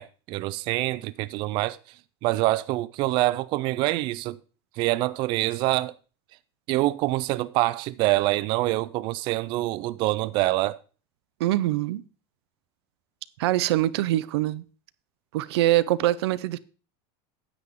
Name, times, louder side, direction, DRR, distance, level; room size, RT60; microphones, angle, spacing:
voice 1, 0.0-1.8 2.2-4.4 4.8-5.9 6.7-10.8, right 18 dB, 35° right, 0.4 m, -25 dB
voice 2, 11.4-12.0 13.4-14.6 15.3-16.6, right 15 dB, 90° right, 0.6 m, -23 dB
9.6 x 8.0 x 3.7 m
supercardioid pair, 165°, 13 cm